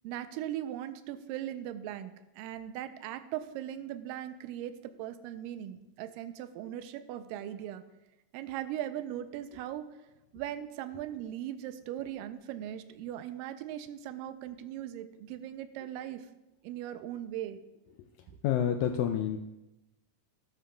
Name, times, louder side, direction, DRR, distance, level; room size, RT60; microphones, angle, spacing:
voice 1, 0.0-7.8 8.3-9.9 10.3-16.3 16.6-17.6 18.3-18.4, right 11 dB, 85° right, 10 dB, 2.3 m, -39 dB
voice 2, 18.4-19.4, left 9 dB, 85° left, 6 dB, 1.6 m, -28 dB
13.5 x 11.5 x 2.3 m, 0.96 s
omnidirectional pair, 3.9 m